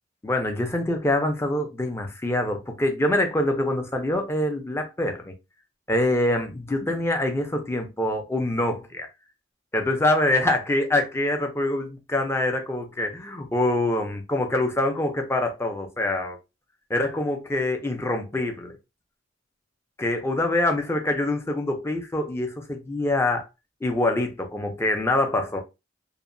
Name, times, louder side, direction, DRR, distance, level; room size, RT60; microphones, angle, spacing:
voice 1, 0.2-5.3 5.9-9.1 9.7-16.4 16.9-18.8 20.0-23.5 23.8-25.6, left 1 dB, 15° left, 0.5 m, -25 dB
2.8 x 2.1 x 2.5 m
head